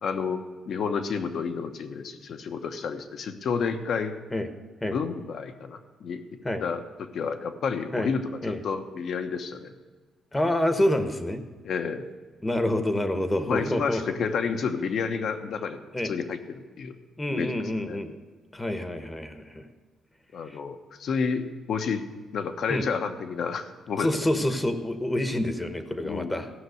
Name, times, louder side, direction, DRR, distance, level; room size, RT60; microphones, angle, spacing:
voice 1, 0.0-4.1 4.8-6.2 6.6-9.7 11.6-12.1 13.5-16.9 17.3-17.5 17.9-18.0 20.3-22.0 22.3-24.1 26.0-26.4, left 5 dB, 65° left, 7 dB, 1.0 m, -30 dB
voice 2, 10.3-11.4 12.4-14.1 15.9-16.1 17.2-18.2 18.5-19.6 20.5-20.6 22.7-22.9 24.0-26.5, left 1 dB, 15° left, 9 dB, 1.0 m, -27 dB
14.5 x 6.0 x 7.9 m, 1.4 s
cardioid pair, 90°, 0 cm